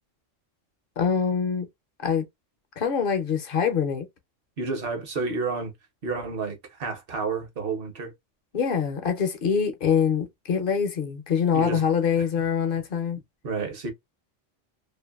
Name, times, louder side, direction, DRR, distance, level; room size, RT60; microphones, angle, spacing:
voice 1, 1.0-1.7 2.0-2.3 2.8-4.1 8.5-13.2, left 7 dB, 55° left, 0.6 m, -24 dB
voice 2, 4.6-5.7 6.0-8.1 11.5-11.8 13.4-13.9, right 4 dB, 55° right, 0.9 m, -30 dB
2.6 x 2.4 x 2.3 m
omnidirectional pair, 1.3 m